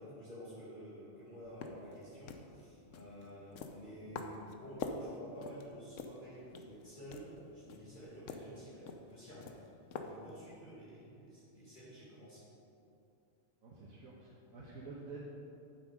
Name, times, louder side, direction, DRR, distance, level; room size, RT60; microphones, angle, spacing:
voice 1, 0.0-9.7 10.0-12.4, equal, 35° left, -10 dB, 2.4 m, -51 dB
sound 1, 1.4-10.6, left 4 dB, 70° left, 1.0 m, -48 dB
voice 2, 13.6-15.2, right 4 dB, 90° right, -5 dB, 1.5 m, -49 dB
8.9 x 7.6 x 4.9 m, 2.7 s
omnidirectional pair, 1.4 m